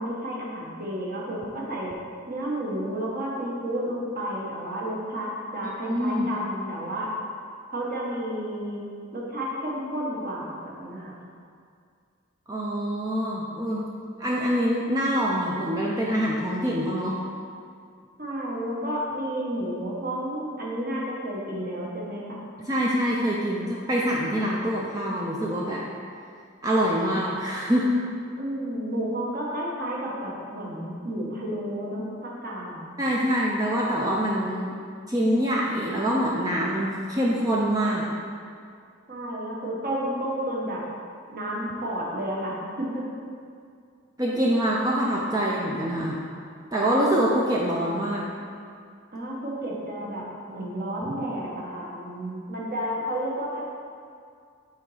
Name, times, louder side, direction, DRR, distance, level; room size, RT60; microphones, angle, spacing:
voice 1, 0.0-1.9 2.3-7.1 7.7-8.8 9.1-11.1 18.2-22.4 28.4-32.9 39.1-40.8 41.3-43.0 49.1-53.6, right 1 dB, 45° right, -4 dB, 1.1 m, -31 dB
voice 2, 5.9-6.3 12.5-13.9 14.2-17.2 22.6-25.8 26.6-28.0 33.0-34.8 35.1-38.1 44.2-46.2 46.7-48.2, equal, 15° right, -4 dB, 0.4 m, -25 dB
5.7 x 3.9 x 4.8 m, 2.3 s
head